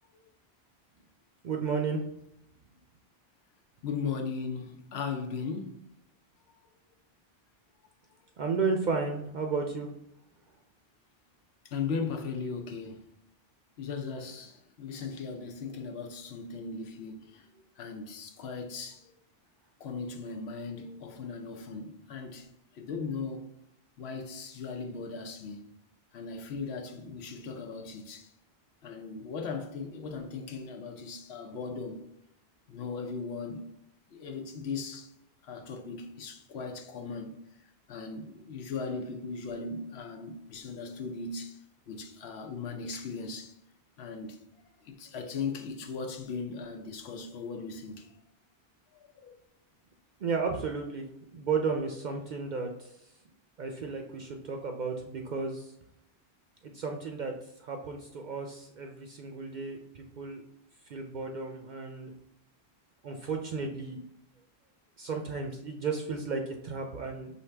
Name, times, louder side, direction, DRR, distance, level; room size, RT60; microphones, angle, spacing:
voice 1, 1.4-2.0 8.4-9.9 50.2-52.9 53.6-55.7 56.7-57.3 57.6-60.4 60.9-62.1 63.0-64.0 65.0-67.3, right 4 dB, 55° right, 0.5 m, -33 dB
voice 2, 3.8-5.8 6.5-6.6 11.6-13.1 13.8-17.5 17.8-19.1 19.8-22.5 22.7-23.5 24.0-25.7 26.1-28.3 28.8-32.0 32.7-33.7 34.1-35.1 35.4-37.4 37.9-41.6 41.9-43.5 44.0-44.4 44.8-48.1 48.9-49.3, left 5 dB, 85° left, 0.9 m, -38 dB
4.8 x 2.7 x 3.3 m
omnidirectional pair, 1.1 m